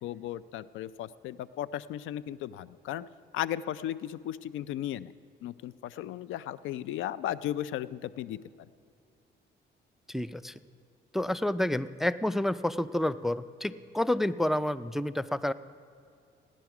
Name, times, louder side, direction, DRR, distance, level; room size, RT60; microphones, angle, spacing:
voice 1, 0.0-3.1 3.3-5.1 5.4-8.4, left 12 dB, 80° left, 18 dB, 0.4 m, -35 dB
voice 2, 10.1-10.5 11.1-15.5, left 1 dB, ahead, 15 dB, 0.3 m, -29 dB
16.5 x 10.5 x 5.9 m, 2.4 s
cardioid pair, 90°, 20 cm